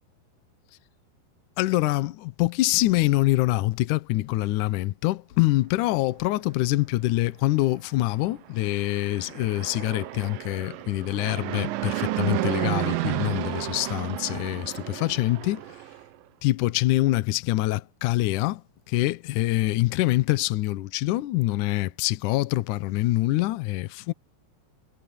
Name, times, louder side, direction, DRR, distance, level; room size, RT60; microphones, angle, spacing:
voice 1, 1.6-15.6 16.4-18.6 18.9-24.1, left 18 dB, 85° left, 1.7 m, -25 dB
Fixed-wing aircraft airplane, 8.6-16.0, right 16 dB, 75° right, 2.3 m, -32 dB
omnidirectional pair, 4.8 m